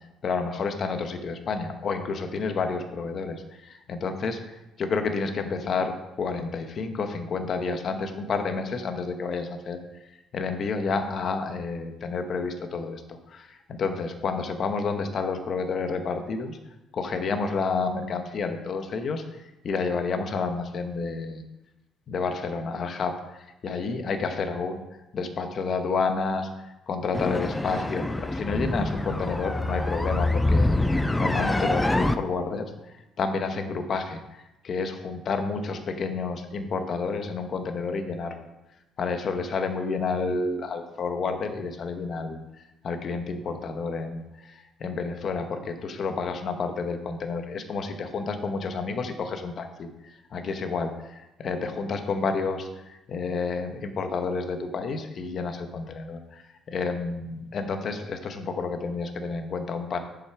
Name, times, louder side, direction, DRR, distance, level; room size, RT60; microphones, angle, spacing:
voice 1, 0.2-4.4 4.8-9.8 10.3-16.6 16.9-21.4 22.1-23.4 23.6-24.8 25.1-26.5 26.9-38.3 39.0-42.4 42.8-49.9 50.3-56.4 56.7-60.0, left 4 dB, 35° left, 7 dB, 0.9 m, -30 dB
sound 1, 27.1-32.1, left 2 dB, 5° left, 0.3 m, -25 dB
10.0 x 5.7 x 4.6 m, 0.96 s
cardioid pair, 175°, 0 cm